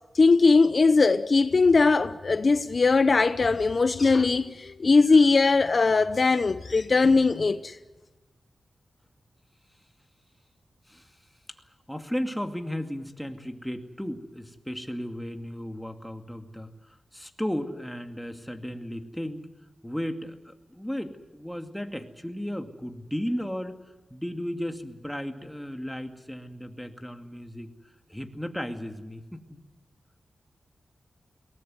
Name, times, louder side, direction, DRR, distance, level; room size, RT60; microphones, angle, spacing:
voice 1, 0.1-7.7, left 4 dB, 55° left, 0.8 m, -20 dB
voice 2, 11.9-16.7 17.1-19.5 19.8-23.8 24.1-27.7 28.1-29.6, equal, 5° left, 2.3 m, -35 dB
22.5 x 18.5 x 9.5 m
cardioid pair, 60°, 0 cm